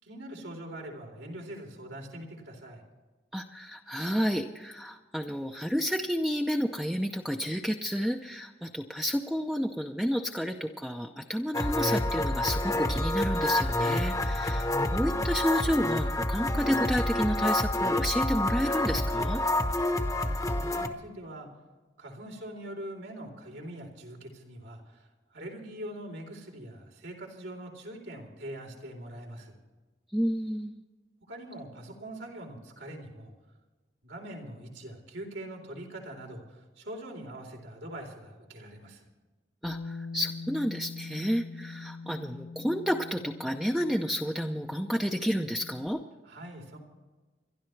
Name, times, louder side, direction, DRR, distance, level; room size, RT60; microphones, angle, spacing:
voice 1, 0.0-2.8 13.7-14.2 20.1-21.5 22.0-25.1 25.3-29.6 31.3-33.3 34.0-39.1 46.3-46.8, right 1 dB, 85° right, 1 dB, 3.8 m, -43 dB
voice 2, 3.3-19.4 30.1-30.8 39.6-46.0, equal, ahead, 2 dB, 0.6 m, -30 dB
sound 1, 11.5-20.9, left 1 dB, 20° left, 0.9 m, -28 dB
Bass guitar, 39.6-45.9, left 4 dB, 80° left, 1.2 m, -43 dB
29.5 x 12.5 x 3.3 m, 1.2 s
head